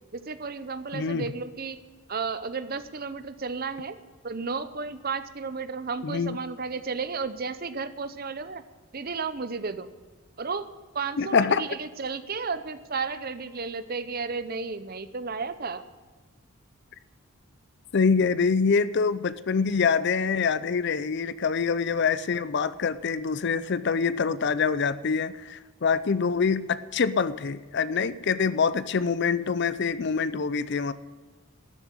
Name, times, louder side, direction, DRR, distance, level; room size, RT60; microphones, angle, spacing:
voice 1, 0.1-1.8 2.1-4.0 4.2-8.6 8.9-9.9 10.4-10.7 10.9-15.8, right 4 dB, 45° right, 13 dB, 0.8 m, -33 dB
voice 2, 0.9-1.3 6.0-6.4 11.2-11.6 17.9-30.9, left 5 dB, 50° left, 16 dB, 0.5 m, -25 dB
13.0 x 7.5 x 9.5 m, 1.4 s
head